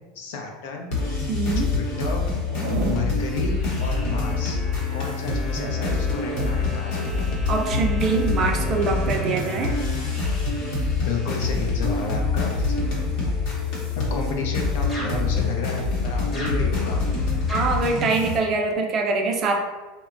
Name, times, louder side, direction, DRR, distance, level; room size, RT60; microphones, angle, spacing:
voice 1, 0.1-0.9 1.5-1.7 2.0-2.2 2.8-4.6 4.9-7.3 8.8-8.9 10.9-12.8 14.0-17.0, left 4 dB, 80° left, 2 dB, 0.5 m, -32 dB
sound 1, 0.9-18.4, left 3 dB, 60° left, 0.8 m, -25 dB
voice 2, 1.3-1.7 2.8-3.2 7.5-9.8 17.5-19.6, right 4 dB, 35° right, 2 dB, 0.3 m, -24 dB
Zipper (clothing), 2.4-3.1 5.2-6.6 8.4-8.7, right 3 dB, 75° right, 0.7 m, -34 dB
sound 2, 3.0-14.5 14.9-18.7, equal, 20° left, 0.8 m, -40 dB
2.9 x 2.1 x 2.4 m, 1.3 s
supercardioid pair, 135°, 0 cm